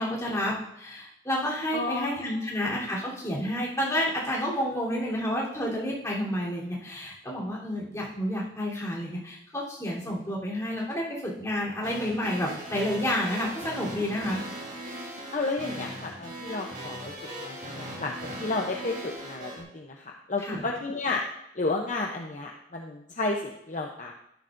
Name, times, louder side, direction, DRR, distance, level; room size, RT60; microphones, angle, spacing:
voice 1, 0.0-14.4 20.4-20.6, equal, 15° left, -6 dB, 3.5 m, -30 dB
voice 2, 1.7-2.6 15.3-21.2 21.5-24.1, left 3 dB, 40° left, 1 dB, 0.8 m, -32 dB
sound 1, 11.8-19.6, right 1 dB, 45° right, 3.6 m, -39 dB
13.0 x 11.5 x 2.6 m, 0.77 s
head